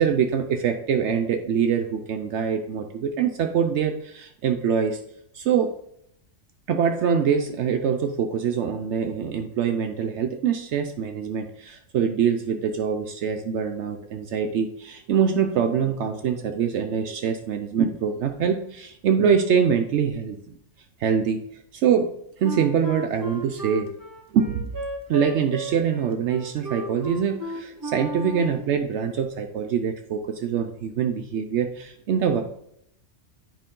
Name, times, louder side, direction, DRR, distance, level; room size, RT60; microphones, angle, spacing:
voice 1, 0.0-5.0 5.3-5.7 6.7-20.4 21.0-21.4 21.7-22.1 22.4-23.9 24.3-24.7 25.1-32.4, right 7 dB, 70° right, 6 dB, 0.9 m, -24 dB
Wind instrument woodwind instrument, 22.4-28.7, right 2 dB, 20° right, 0.8 m, -34 dB
9.1 x 5.2 x 3.7 m, 0.74 s
omnidirectional pair, 1.3 m